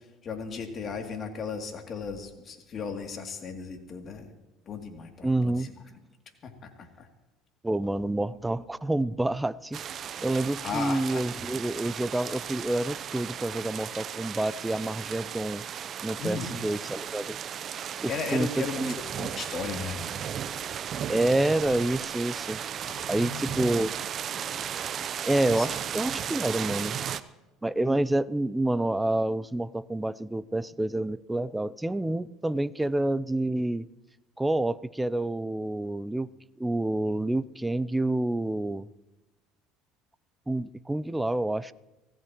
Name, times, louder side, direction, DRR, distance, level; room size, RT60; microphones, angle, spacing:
voice 1, 0.2-4.3 4.7-5.7 6.4-7.1 10.6-11.0 16.2-16.5 18.1-20.1 22.9-23.6 25.5-25.7, left 5 dB, 45° left, 2.8 m, -36 dB
voice 2, 5.2-5.7 7.6-9.8 10.2-15.6 16.0-17.4 18.0-19.0 21.1-22.6 23.1-23.9 25.3-27.0 27.6-33.9 34.4-36.3 36.6-38.9 40.5-41.7, right 1 dB, 10° right, 0.6 m, -28 dB
sound 1, 9.7-27.2, right 9 dB, 45° right, 0.7 m, -35 dB
25.0 x 16.5 x 3.1 m
hypercardioid pair, 75°, 0 cm